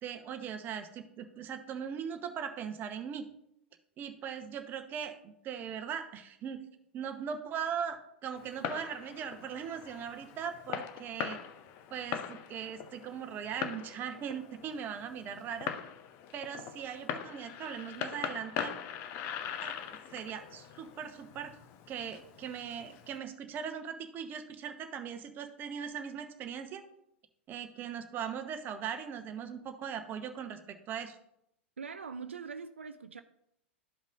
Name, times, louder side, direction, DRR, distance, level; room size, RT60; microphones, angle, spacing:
voice 1, 0.0-3.3 4.0-6.6 6.9-11.4 11.9-15.7 16.3-18.7 19.6-19.7 20.1-21.5 21.9-26.8 27.5-31.2, right 7 dB, 30° right, 0.9 m, -39 dB
Fireworks, 8.4-23.2, left 8 dB, 40° left, 0.7 m, -42 dB
voice 2, 31.8-33.2, right 5 dB, 80° right, 0.4 m, -42 dB
13.0 x 5.2 x 2.5 m
figure-of-eight pair, 95°, 6 cm